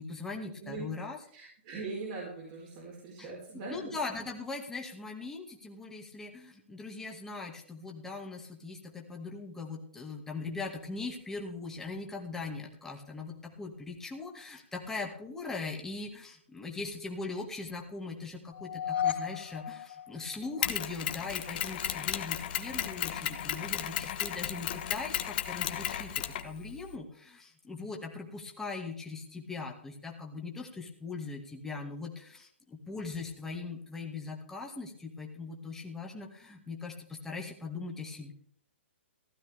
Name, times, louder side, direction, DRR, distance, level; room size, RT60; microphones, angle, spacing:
voice 1, 0.0-1.2 3.2-3.3 3.7-38.3, left 3 dB, 5° left, 0 dB, 2.0 m, -40 dB
voice 2, 0.6-3.9, right 3 dB, 40° right, -3 dB, 4.5 m, -41 dB
sound 1, 18.5-20.8, left 9 dB, 65° left, 2.9 m, -34 dB
Mechanisms, 20.6-27.0, left 11 dB, 45° left, 1.3 m, -34 dB
15.5 x 13.0 x 3.5 m, 0.63 s
hypercardioid pair, 150°, 7 cm